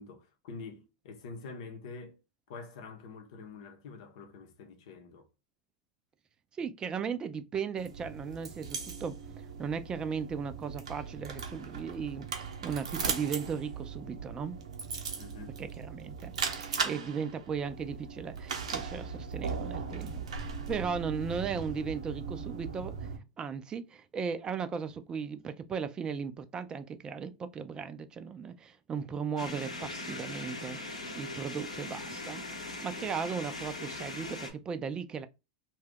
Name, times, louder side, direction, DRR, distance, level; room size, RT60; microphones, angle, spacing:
voice 1, 0.0-2.2 2.5-5.3 15.2-15.6 16.7-17.1, left 4 dB, 60° left, 0.8 m, -46 dB
voice 2, 6.6-9.2 9.6-14.6 15.6-23.1 23.4-35.3, right 6 dB, 25° right, 0.4 m, -37 dB
sound 1, 7.8-23.2, right 5 dB, 75° right, 0.7 m, -38 dB
sound 2, 29.4-34.5, left 2 dB, 90° left, 1.0 m, -40 dB
2.7 x 2.3 x 3.5 m
hypercardioid pair, 95°, 4 cm